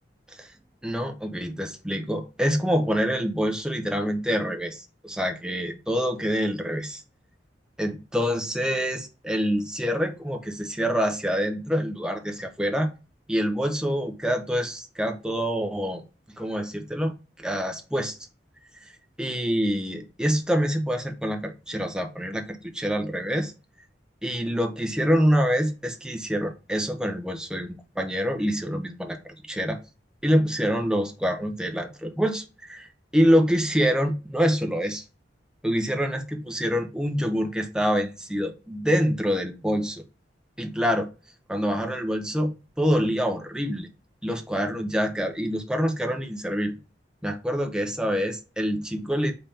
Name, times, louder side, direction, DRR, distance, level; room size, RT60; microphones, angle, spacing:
voice 1, 0.8-7.0 7.8-12.9 13.3-16.0 16.4-18.2 18.8-18.9 19.2-23.5 24.2-29.2 29.5-29.8 30.2-35.0 35.6-40.0 40.6-41.1 41.5-43.9 44.2-46.7 47.2-49.3, equal, 5° right, 0.6 m, -26 dB
5.3 x 3.3 x 2.8 m
head